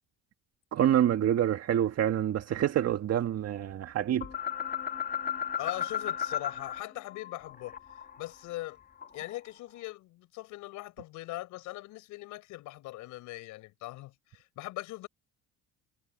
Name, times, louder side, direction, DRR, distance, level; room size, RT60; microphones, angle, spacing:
voice 1, 0.7-4.3, right 11 dB, 55° right, 1.9 m, -27 dB
sound 1, 4.2-6.8 7.1-9.4, left 9 dB, 30° left, 2.5 m, -35 dB
voice 2, 5.6-7.8 8.2-8.8 9.1-15.1, left 18 dB, 75° left, 5.5 m, -41 dB
supercardioid pair, 95°, 30 cm